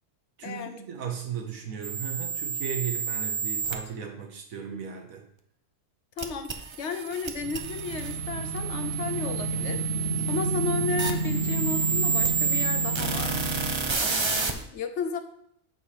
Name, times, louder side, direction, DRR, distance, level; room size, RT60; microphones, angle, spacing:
voice 1, 0.4-5.2, right 7 dB, 85° right, 2 dB, 1.4 m, -36 dB
sound 1, 1.8-3.7 6.2-14.5, right 6 dB, 40° right, 0.4 m, -30 dB
voice 2, 6.2-9.8 10.3-13.4 14.0-15.2, left 5 dB, 65° left, 8 dB, 1.0 m, -33 dB
sound 2, 7.4-13.7, right 2 dB, 60° right, 0.9 m, -31 dB
7.9 x 4.3 x 4.9 m, 0.72 s
omnidirectional pair, 1.4 m